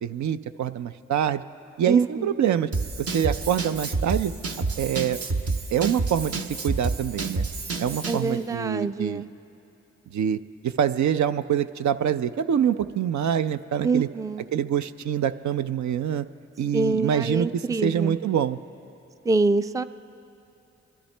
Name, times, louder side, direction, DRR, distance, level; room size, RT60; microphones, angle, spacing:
voice 1, 0.0-1.4 1.8-2.7 3.0-4.3 4.8-5.2 5.7-7.4 7.8-9.2 10.1-10.4 10.6-14.1 14.5-16.3 16.6-18.6, right 9 dB, 70° right, 11 dB, 0.5 m, -25 dB
voice 2, 1.9-2.3 8.1-9.3 13.8-14.5 16.7-18.2 19.3-19.8, right 3 dB, 10° right, 12 dB, 0.4 m, -25 dB
Drum kit / Drum, 2.7-8.3, right 3 dB, 50° right, 1.0 m, -29 dB
29.5 x 11.5 x 3.3 m, 2.9 s
supercardioid pair, 45°, 30 cm